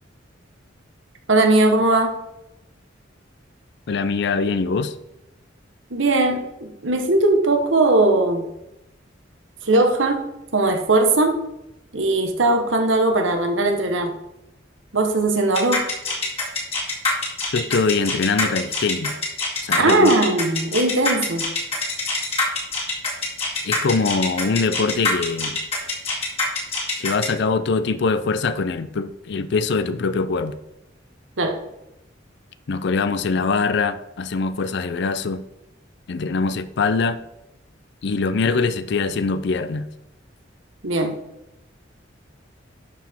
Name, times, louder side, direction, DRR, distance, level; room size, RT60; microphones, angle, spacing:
voice 1, 1.3-2.1 5.9-8.5 9.6-11.4 11.9-14.1 14.9-15.9 19.8-21.5 31.4-31.6 40.8-41.2, right 2 dB, 80° right, 1.1 m, -19 dB
voice 2, 3.9-5.0 17.5-19.1 19.6-20.1 23.6-25.6 26.9-30.5 32.7-35.4 36.1-37.2 38.0-39.9, left 4 dB, 65° left, 0.5 m, -23 dB
sound 1, 15.5-27.3, left 3 dB, 35° left, 2.3 m, -24 dB
11.5 x 4.8 x 3.6 m
head